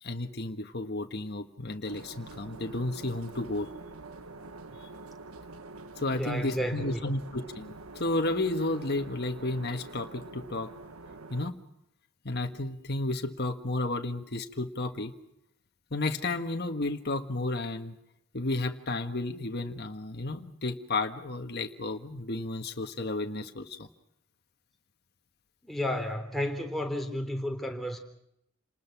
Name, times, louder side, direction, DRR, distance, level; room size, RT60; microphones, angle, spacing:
voice 1, 0.0-3.7 6.0-10.7 11.3-11.5 12.2-15.1 15.9-17.9 18.3-23.9, left 2 dB, 50° left, 5 dB, 1.6 m, -32 dB
sound 1, 1.8-11.5, right 3 dB, 85° right, 1.3 m, -46 dB
voice 2, 6.1-7.2 25.6-28.0, equal, ahead, 3 dB, 3.5 m, -32 dB
29.5 x 20.0 x 6.1 m, 0.80 s
head